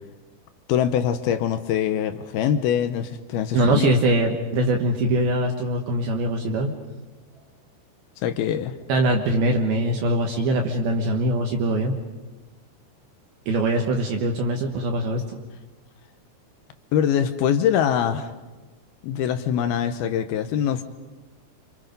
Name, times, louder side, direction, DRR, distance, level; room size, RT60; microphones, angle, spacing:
voice 1, 0.7-4.0 8.2-8.7 16.9-18.3 19.0-20.8, left 9 dB, 75° left, 10 dB, 2.4 m, -23 dB
voice 2, 3.5-6.7 8.9-12.0 13.5-15.4, right 1 dB, 65° right, 2 dB, 3.0 m, -22 dB
27.5 x 27.0 x 5.3 m, 1.2 s
omnidirectional pair, 5.2 m